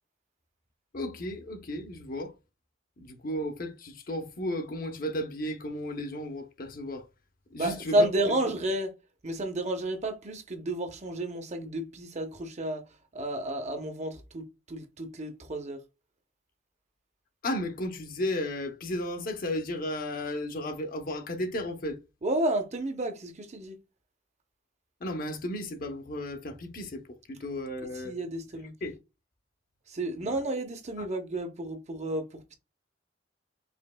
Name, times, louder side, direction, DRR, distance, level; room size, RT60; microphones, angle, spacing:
voice 1, 0.9-2.3 3.0-7.1 7.5-8.0 17.4-22.0 25.0-27.0 27.3-28.1 28.8-29.0 30.2-30.4 31.0-31.1, left 1 dB, 50° left, 0.8 m, -34 dB
voice 2, 7.6-8.9 9.2-12.8 13.1-15.8 22.2-23.8 28.0-28.7 29.9-32.5, right 1 dB, 40° right, 0.7 m, -31 dB
5.1 x 2.9 x 2.2 m
head